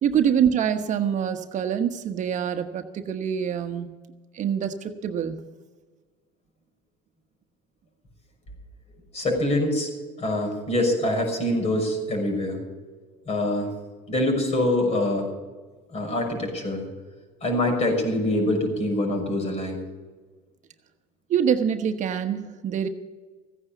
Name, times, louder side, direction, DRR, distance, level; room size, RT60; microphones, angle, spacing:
voice 1, 0.0-3.9 4.3-5.4 21.3-22.9, right 8 dB, 50° right, 7 dB, 1.2 m, -25 dB
voice 2, 9.1-9.9 10.2-12.6 13.3-13.7 14.1-15.3 15.9-16.9 17.4-19.8, left 1 dB, 40° left, 2 dB, 6.0 m, -24 dB
15.5 x 9.7 x 7.2 m, 1.4 s
supercardioid pair, 95°, 17 cm